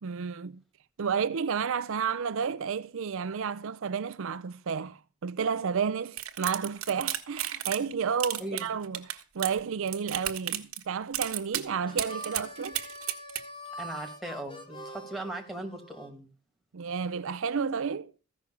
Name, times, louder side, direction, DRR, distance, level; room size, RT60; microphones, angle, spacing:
voice 1, 0.0-0.6 1.0-12.8 16.7-18.1, right 6 dB, 65° right, 0.5 m, -31 dB
sound 1, 6.2-7.9 8.2-9.6 9.9-10.8 11.1-11.6 12.0-13.4, right 12 dB, 85° right, 1.4 m, -32 dB
voice 2, 8.4-8.7 13.8-16.3, right 1 dB, ahead, 2.2 m, -38 dB
Harmonica, 11.8-16.1, equal, 25° left, 2.0 m, -44 dB
14.5 x 6.2 x 6.9 m
head